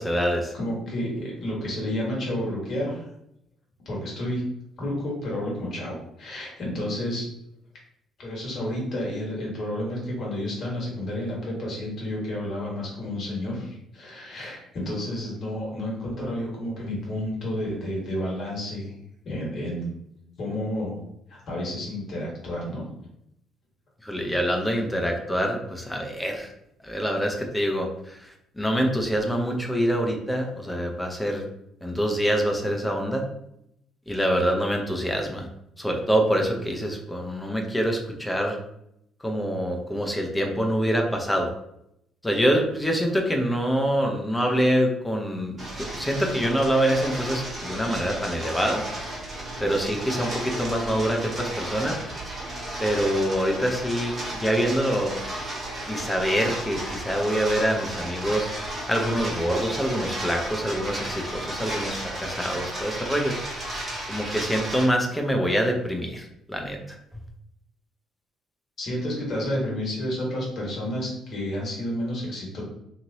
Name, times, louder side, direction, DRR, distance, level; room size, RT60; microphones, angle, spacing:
voice 1, 0.0-0.5 14.4-14.5 24.0-26.5 26.8-31.4 31.8-33.2 34.1-35.5 35.8-38.6 39.2-41.5 42.2-48.8 49.6-52.0 52.8-55.1 55.9-63.8 64.1-67.0, equal, 10° left, 2 dB, 0.8 m, -25 dB
voice 2, 0.5-3.1 3.8-4.4 4.8-7.2 8.2-18.9 19.2-19.8 20.4-21.0 21.3-22.9 68.8-72.6, left 1 dB, 50° left, -3 dB, 1.5 m, -30 dB
sound 1, 45.6-64.9, right 1 dB, 40° right, 1.2 m, -34 dB
3.0 x 2.8 x 2.8 m, 0.77 s
figure-of-eight pair, 50°, 0 cm